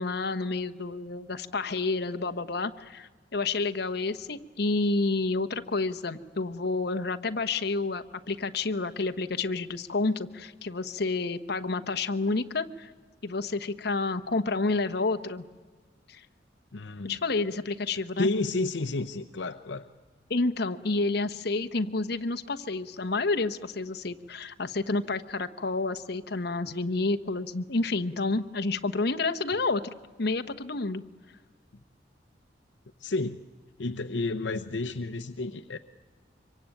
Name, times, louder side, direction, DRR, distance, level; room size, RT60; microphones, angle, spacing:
voice 1, 0.0-12.9 13.2-15.4 16.1-16.2 17.0-18.3 20.3-29.9 30.2-31.0, left 3 dB, 60° left, 8 dB, 1.1 m, -29 dB
voice 2, 16.7-17.2 18.2-19.9 33.0-33.4 33.8-35.8, left 2 dB, 80° left, 6 dB, 0.8 m, -31 dB
25.0 x 23.5 x 9.0 m, 1.3 s
head